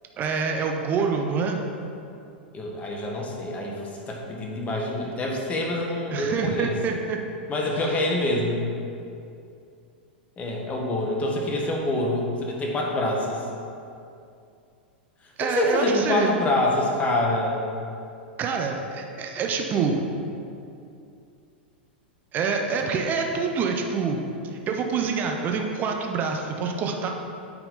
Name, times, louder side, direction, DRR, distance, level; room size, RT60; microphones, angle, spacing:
voice 1, 0.2-1.6 6.1-7.2 15.4-16.3 18.4-20.1 22.3-27.1, right 5 dB, 35° right, 2 dB, 0.9 m, -26 dB
voice 2, 2.5-6.8 7.5-8.7 10.4-13.4 15.4-17.7, left 1 dB, 25° left, -1 dB, 1.4 m, -26 dB
8.7 x 4.8 x 3.9 m, 2.6 s
hypercardioid pair, 105°, 6 cm